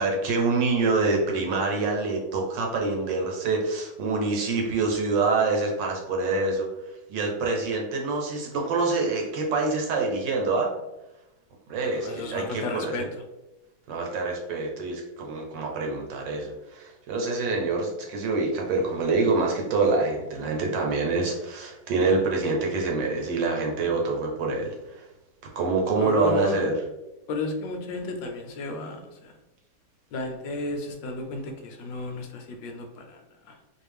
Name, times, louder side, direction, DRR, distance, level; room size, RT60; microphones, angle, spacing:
voice 1, 0.0-6.7 7.1-10.7 11.7-13.1 13.9-25.0 25.5-26.7, right 3 dB, 65° right, 0 dB, 1.4 m, -26 dB
voice 2, 11.8-13.0 26.0-26.7 27.3-29.0 30.1-33.2 33.5-33.6, left 3 dB, 75° left, 3 dB, 1.3 m, -33 dB
4.5 x 2.4 x 3.4 m, 0.98 s
omnidirectional pair, 2.3 m